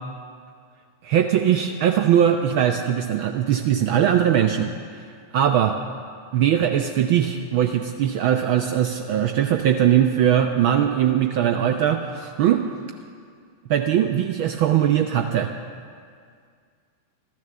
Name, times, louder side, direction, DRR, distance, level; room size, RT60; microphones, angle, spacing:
voice 1, 1.0-5.1 5.3-5.8 6.3-12.6 13.7-15.5, right 10 dB, 50° right, 5 dB, 0.6 m, -20 dB
13.0 x 10.5 x 6.8 m, 2.1 s
figure-of-eight pair, 90°, 0 cm